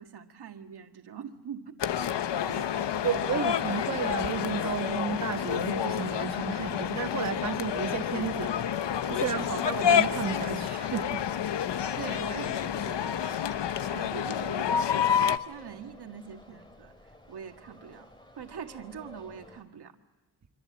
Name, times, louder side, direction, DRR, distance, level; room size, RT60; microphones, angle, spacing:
voice 1, 0.0-1.8 2.4-2.9 3.2-3.4 9.3-9.6 12.0-16.9 17.3-18.1 18.3-19.9, right 7 dB, 70° right, 5 dB, 1.8 m, -43 dB
sound 1, 1.8-15.4, left 9 dB, 90° left, 0.9 m, -29 dB
voice 2, 3.0-8.5 9.0-11.2, right 7 dB, 40° right, 7 dB, 1.3 m, -32 dB
sound 2, 7.1-19.6, left 1 dB, 10° left, 2.5 m, -53 dB
26.0 x 26.0 x 7.8 m, 1.1 s
wide cardioid pair, 180°, 41 cm